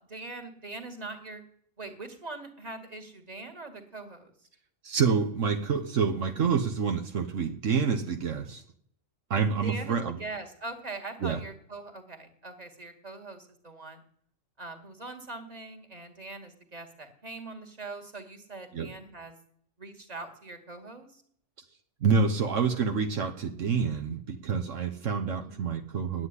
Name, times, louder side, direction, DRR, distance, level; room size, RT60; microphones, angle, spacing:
voice 1, 0.1-1.4 1.8-4.3 9.6-14.0 14.6-19.3 19.8-21.2 25.4-25.5, right 3 dB, 30° right, 5 dB, 2.1 m, -42 dB
voice 2, 4.8-8.6 9.3-10.2 11.2-11.4 18.7-18.9 22.0-26.3, right 5 dB, 80° right, 5 dB, 1.4 m, -27 dB
10.0 x 9.3 x 9.8 m, 0.66 s
omnidirectional pair, 1.3 m